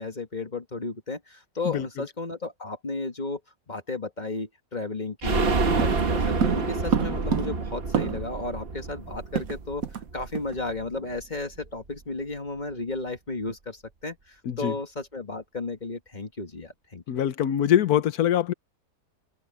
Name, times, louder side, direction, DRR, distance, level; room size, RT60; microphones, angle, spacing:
voice 1, 0.0-3.4 3.7-17.0, left 3 dB, 25° left, 1.8 m, -34 dB
sound 1, 5.2-10.8 11.2-11.3 11.6-11.7, right 3 dB, 35° right, 1.4 m, -28 dB
sound 2, 5.8-8.4 8.7-8.8 9.1-10.1 10.3-10.6 10.9-11.2, right 7 dB, 55° right, 1.4 m, -29 dB
voice 2, 17.1-18.5, left 10 dB, 65° left, 1.4 m, -23 dB
omnidirectional pair, 1.8 m